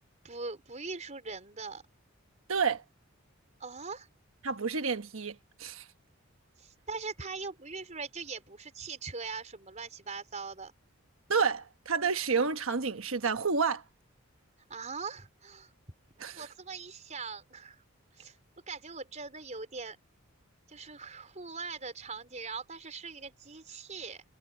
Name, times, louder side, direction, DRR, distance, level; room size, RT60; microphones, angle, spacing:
voice 1, 0.2-1.8 3.6-4.1 6.6-10.7 14.7-15.7 16.3-17.8 18.1-18.4 18.7-20.0 20.7-24.2, right 4 dB, 35° right, 4.5 m, -41 dB
voice 2, 2.5-2.8 4.4-5.9 11.3-13.8 16.2-16.5, right 5 dB, 75° right, 1.3 m, -30 dB
head